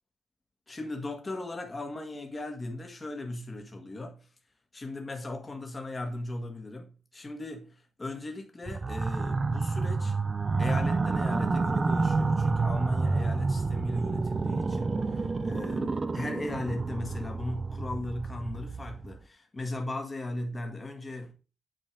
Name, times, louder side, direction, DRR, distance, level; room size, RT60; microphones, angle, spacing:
voice 1, 0.7-4.3 4.7-10.2 10.6-21.3, left 2 dB, 20° left, 1.8 m, -37 dB
sound 1, 8.7-19.2, right 3 dB, 25° right, 0.5 m, -29 dB
9.1 x 4.5 x 4.8 m
wide cardioid pair, 145°, 0 cm